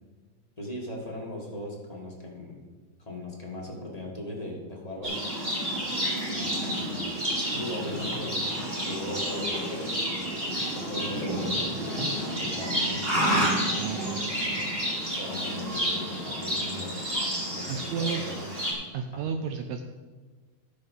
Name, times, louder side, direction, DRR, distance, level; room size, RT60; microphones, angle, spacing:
voice 1, 0.6-2.6 3.0-5.3 6.3-7.0 7.5-8.4 8.8-13.5 15.1-17.0 17.5-18.5 19.1-19.3, left 1 dB, 25° left, -3 dB, 0.7 m, -39 dB
Livestock farm animals working animals, 5.0-18.7, equal, 20° right, 1.9 m, -30 dB
voice 2, 13.8-14.7 17.7-18.2 18.9-19.8, right 6 dB, 80° right, 6 dB, 1.7 m, -33 dB
12.5 x 6.8 x 5.4 m, 1.3 s
omnidirectional pair, 3.8 m